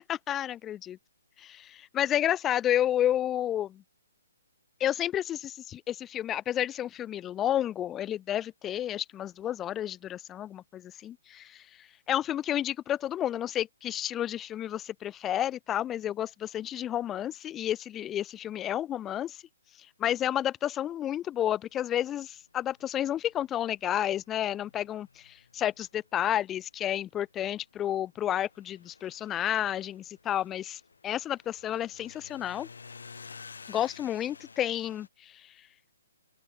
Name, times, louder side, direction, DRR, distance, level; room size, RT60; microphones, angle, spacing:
voice 1, 0.1-1.0 1.4-3.8 4.8-11.6 12.1-19.4 20.0-32.7 33.7-35.3, left 11 dB, 10° left, 0.4 m, -31 dB
sound 1, 22.1-22.2 22.5-26.9 27.2-35.1, left 5 dB, 85° left, 6.9 m, -52 dB
open air
hypercardioid pair, 170°, 0 cm